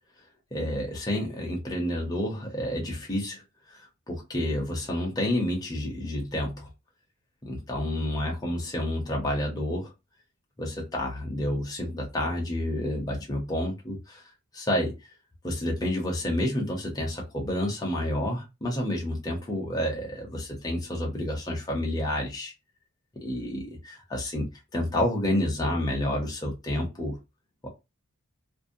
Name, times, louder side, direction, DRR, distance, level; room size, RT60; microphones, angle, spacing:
voice 1, 0.5-3.4 3.7-6.7 7.4-9.9 10.6-14.2 14.5-14.9 15.4-22.5 23.2-27.2 27.6-27.7, left 1 dB, 15° left, 0.7 m, -29 dB
2.6 x 2.1 x 2.5 m
head